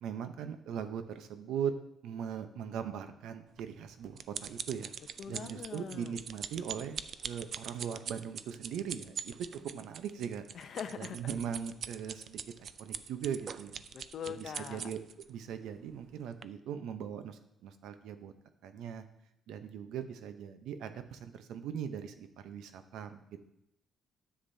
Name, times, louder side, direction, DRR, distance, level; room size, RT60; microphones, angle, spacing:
voice 1, 0.0-1.7 2.0-4.9 5.3-9.3 9.6-10.4 11.0-13.8 14.3-15.0 15.3-18.3 18.6-19.0 19.5-23.4, right 8 dB, 85° right, 9 dB, 0.7 m, -40 dB
sound 1, 3.6-15.2 15.9-16.1 16.4-16.5, right 7 dB, 55° right, 0.3 m, -42 dB
voice 2, 5.2-6.1 10.5-11.4 13.9-14.9, left 7 dB, 55° left, 9 dB, 0.6 m, -42 dB
10.0 x 7.3 x 2.7 m, 0.81 s
cardioid pair, 120°, 0 cm